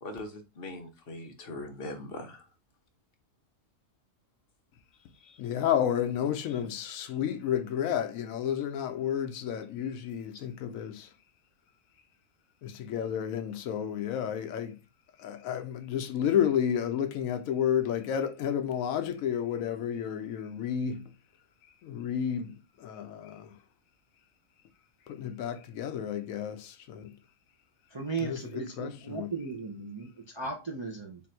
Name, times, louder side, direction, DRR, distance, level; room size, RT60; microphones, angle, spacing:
voice 1, 0.0-2.5 5.2-5.4, left 2 dB, 50° left, 1.0 m, -41 dB
voice 2, 5.4-11.1 12.6-14.8 15.2-21.0 21.8-23.5 25.1-27.1 28.2-29.3, left 9 dB, 80° left, 1.0 m, -31 dB
voice 3, 27.9-31.2, right 4 dB, 30° right, 0.5 m, -36 dB
3.8 x 2.5 x 4.3 m
omnidirectional pair, 1.4 m